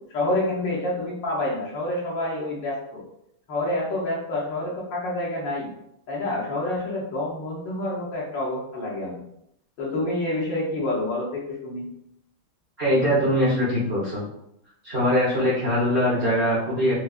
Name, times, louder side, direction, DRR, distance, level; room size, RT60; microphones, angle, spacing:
voice 1, 0.1-3.0 3.5-5.7 6.1-9.2 9.8-11.9, left 1 dB, 65° left, -5 dB, 1.4 m, -28 dB
voice 2, 12.8-14.2 14.8-17.0, equal, 50° right, -8 dB, 0.7 m, -22 dB
4.7 x 2.4 x 2.3 m, 0.76 s
omnidirectional pair, 2.4 m